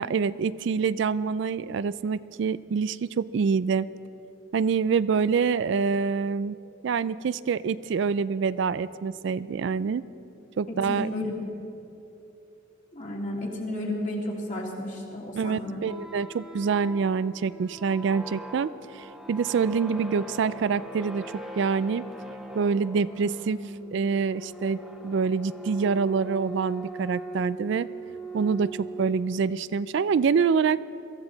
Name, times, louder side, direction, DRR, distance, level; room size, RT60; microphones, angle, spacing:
voice 1, 0.0-3.9 4.5-6.6 6.8-10.0 10.6-11.1 15.4-22.0 22.5-27.9 28.3-30.8, right 5 dB, 60° right, 16 dB, 0.3 m, -26 dB
voice 2, 10.7-11.5 12.9-15.9, left 1 dB, 40° left, -2 dB, 2.6 m, -32 dB
sound 1, 15.8-29.5, right 1 dB, ahead, 1.0 m, -40 dB
23.0 x 14.5 x 4.0 m, 2.7 s
head